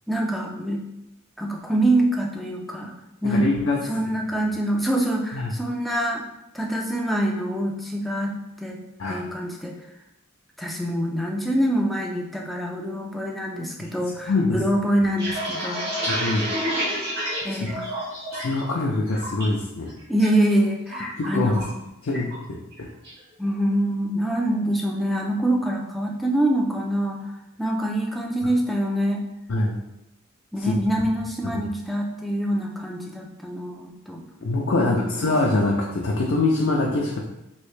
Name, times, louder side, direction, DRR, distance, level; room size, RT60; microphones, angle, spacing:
voice 1, 0.1-0.8 1.4-2.9 3.2-3.5 3.8-6.2 6.5-8.3 8.6-8.8 9.1-9.8 10.6-15.9 17.4-17.8 20.1-21.7 23.4-27.3 27.6-29.2 30.5-34.2 34.7-35.3, right 1 dB, ahead, 0 dB, 0.3 m, -25 dB
voice 2, 3.2-3.8 5.3-5.5 9.0-9.3 13.8-13.9 14.3-14.6 16.0-16.4 17.5-17.8 18.3-19.9 21.2-21.6 22.0-22.3 29.5-29.7 30.6-30.7 31.5-31.6 34.4-37.2, left 2 dB, 65° left, -2 dB, 0.4 m, -24 dB
sound 1, 14.9-18.6 18.9-19.5 19.9-20.3 20.5-21.8 22.1-22.4 22.7-23.2, equal, 50° right, 1.1 m, -29 dB
3.1 x 2.7 x 3.1 m, 0.90 s
head